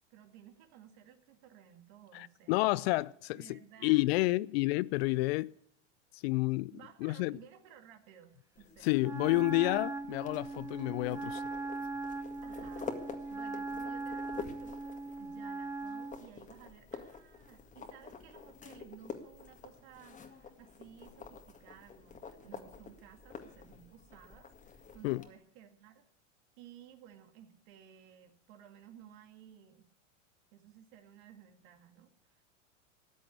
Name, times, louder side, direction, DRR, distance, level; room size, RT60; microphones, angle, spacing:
voice 1, 0.1-2.6 3.4-4.1 6.7-9.4 12.4-26.0 26.6-29.9 30.5-32.4, right 10 dB, 55° right, 2.1 m, -56 dB
voice 2, 2.1-5.5 6.1-6.7 7.0-7.4 8.8-11.4 25.0-25.2, left 21 dB, 55° left, 0.5 m, -30 dB
sound 1, 8.5-25.3, left 5 dB, 20° left, 1.9 m, -49 dB
Wind instrument woodwind instrument, 9.0-16.2, right 3 dB, 5° right, 0.9 m, -39 dB
14.0 x 9.0 x 8.4 m
hypercardioid pair, 110°, 37 cm